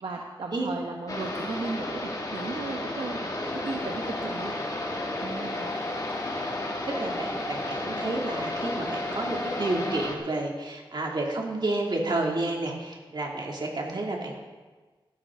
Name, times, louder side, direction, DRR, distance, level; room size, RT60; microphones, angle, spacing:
voice 1, 0.0-4.5 5.2-5.7, right 3 dB, 75° right, 1 dB, 1.1 m, -36 dB
sound 1, 1.1-10.2, left 1 dB, 45° left, 2.1 m, -33 dB
sound 2, 3.4-10.1, left 2 dB, 20° left, 1.1 m, -37 dB
voice 2, 6.8-14.3, right 2 dB, 55° right, -1 dB, 2.5 m, -30 dB
16.5 x 12.5 x 3.8 m, 1.3 s
wide cardioid pair, 115°, 9 cm